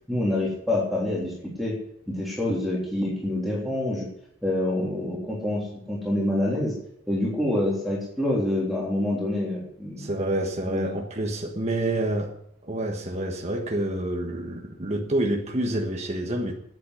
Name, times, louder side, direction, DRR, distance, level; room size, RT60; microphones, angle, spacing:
voice 1, 0.1-1.8 2.1-4.1 4.4-6.7 7.1-10.1 10.7-10.9, left 1 dB, ahead, 3.4 m, -26 dB
voice 2, 10.0-12.3 12.6-16.5, right 1 dB, 35° right, 1.4 m, -28 dB
10.0 x 9.1 x 9.9 m
head